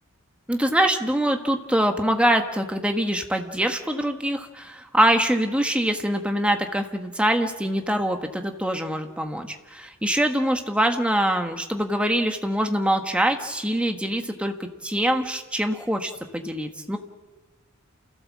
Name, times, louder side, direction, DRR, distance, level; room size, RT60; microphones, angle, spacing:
voice 1, 0.5-17.0, right 1 dB, 5° right, 5 dB, 1.4 m, -24 dB
29.0 x 16.0 x 7.5 m, 1.2 s
head